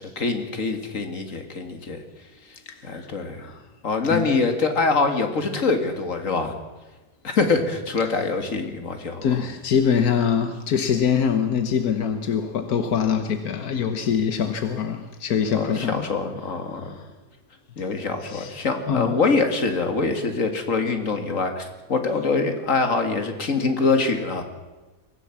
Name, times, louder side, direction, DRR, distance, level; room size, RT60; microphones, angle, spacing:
voice 1, 0.0-2.0 2.5-2.6 2.8-3.5 3.8-6.5 7.2-9.3 15.5-17.0 17.8-24.4, left 4 dB, 60° left, 2.4 m, -24 dB
voice 2, 2.7-3.0 3.4-3.6 4.1-4.4 9.2-16.1 17.0-17.1 18.2-18.5 18.9-19.2, left 7 dB, 85° left, 1.5 m, -24 dB
23.5 x 15.5 x 7.2 m
omnidirectional pair, 1.5 m